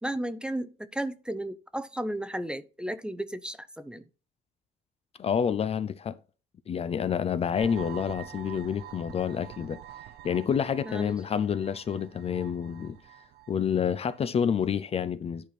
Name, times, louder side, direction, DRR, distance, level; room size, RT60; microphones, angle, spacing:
voice 1, 0.0-4.0 10.9-11.2, right 1 dB, 5° right, 0.6 m, -34 dB
voice 2, 5.2-6.2 6.7-9.8 10.2-13.0 13.5-15.5, left 7 dB, 35° left, 0.6 m, -28 dB
sound 1, 7.6-14.3, right 12 dB, 75° right, 0.6 m, -47 dB
11.0 x 4.4 x 4.2 m
cardioid pair, 125°, 17 cm